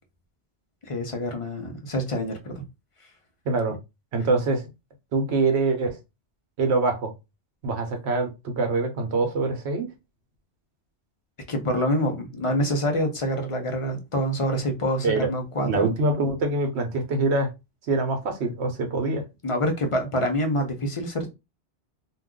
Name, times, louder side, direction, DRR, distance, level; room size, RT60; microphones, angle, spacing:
voice 1, 0.9-2.5 11.5-15.9 19.4-21.3, equal, 40° left, 0.5 m, -26 dB
voice 2, 3.5-3.8 4.1-4.6 5.1-6.0 6.6-7.1 7.6-9.9 15.0-15.3 15.6-17.5 17.9-19.2, right 3 dB, 75° right, 1.0 m, -24 dB
2.3 x 2.3 x 3.6 m
omnidirectional pair, 1.1 m